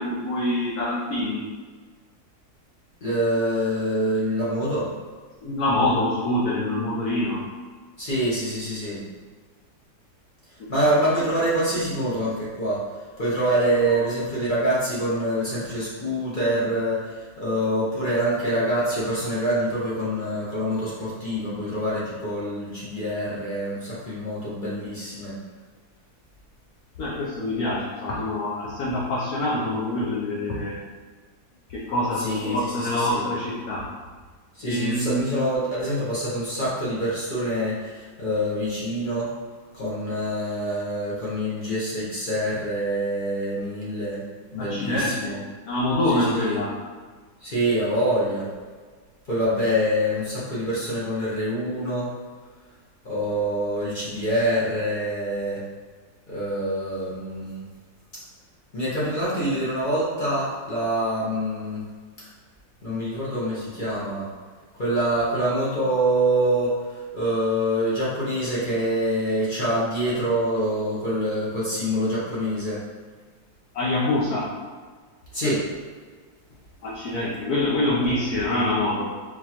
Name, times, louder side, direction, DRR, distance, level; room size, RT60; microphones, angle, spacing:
voice 1, 0.0-1.4 5.4-7.4 10.8-10.9 14.0-14.1 27.0-30.8 31.7-33.9 34.6-35.2 44.6-45.4 45.6-46.8 73.7-74.5 76.8-79.1, left 1 dB, 65° left, -6 dB, 1.0 m, -25 dB
voice 2, 3.0-4.9 8.0-9.0 10.7-12.9 13.2-25.4 32.2-33.2 34.5-39.3 39.7-44.2 44.5-45.4 46.1-46.6 47.4-48.5 49.3-52.1 53.0-55.6 56.3-57.6 58.1-58.2 58.7-61.8 62.8-64.3 64.7-72.9 75.3-75.7, right 1 dB, 45° left, -9 dB, 0.7 m, -25 dB
4.0 x 3.0 x 2.9 m, 1.5 s
omnidirectional pair, 2.0 m